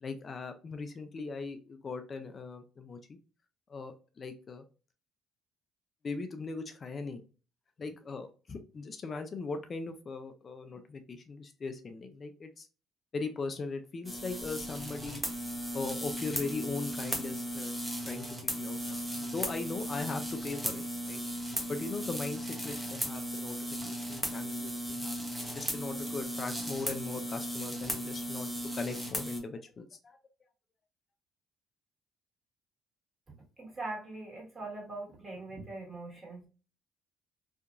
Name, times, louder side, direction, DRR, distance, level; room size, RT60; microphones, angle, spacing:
voice 1, 0.0-3.2 3.7-4.6 6.0-7.2 7.8-12.7 13.1-15.2 15.7-17.7 18.1-18.8 19.1-21.2 21.7-23.6 23.9-25.2 25.5-30.2, left 4 dB, 40° left, 8 dB, 0.3 m, -39 dB
sound 1, 14.0-29.4, equal, 5° right, 0.8 m, -36 dB
voice 2, 33.6-36.5, right 2 dB, 30° right, -3 dB, 1.5 m, -41 dB
2.7 x 2.5 x 2.3 m, 0.35 s
supercardioid pair, 85°, 0 cm